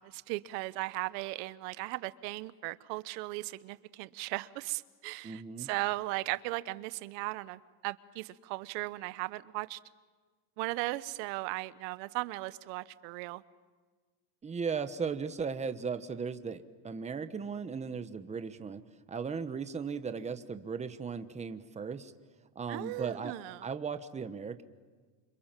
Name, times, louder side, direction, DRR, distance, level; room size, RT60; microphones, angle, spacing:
voice 1, 0.0-9.8 10.6-13.4 22.7-23.7, right 20 dB, 85° right, 15 dB, 1.1 m, -37 dB
voice 2, 5.2-5.7 14.4-18.8 19.1-22.1 22.5-23.4 23.6-24.6, right 5 dB, 15° right, 10 dB, 1.1 m, -37 dB
29.5 x 26.5 x 7.5 m, 1.5 s
cardioid pair, 155°, 49 cm